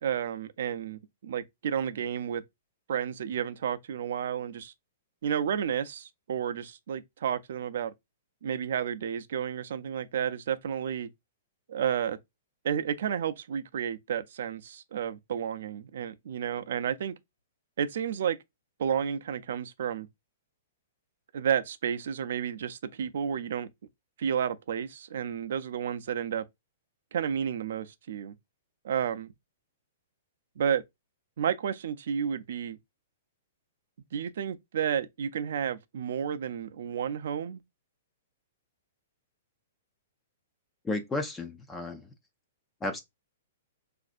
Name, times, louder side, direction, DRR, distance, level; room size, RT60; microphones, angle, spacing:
voice 1, 0.0-2.4 2.9-4.7 5.2-7.9 8.4-11.1 11.7-12.2 12.6-17.1 17.8-18.4 18.8-20.1 21.3-23.7 24.2-26.4 27.1-28.3 28.8-29.3 30.6-30.8 31.4-32.8 34.1-37.6, right 8 dB, 65° right, 0.4 m, -31 dB
voice 2, 40.8-42.1 42.8-43.0, left 2 dB, 10° left, 0.4 m, -33 dB
4.2 x 2.5 x 2.4 m
hypercardioid pair, 160°, 0 cm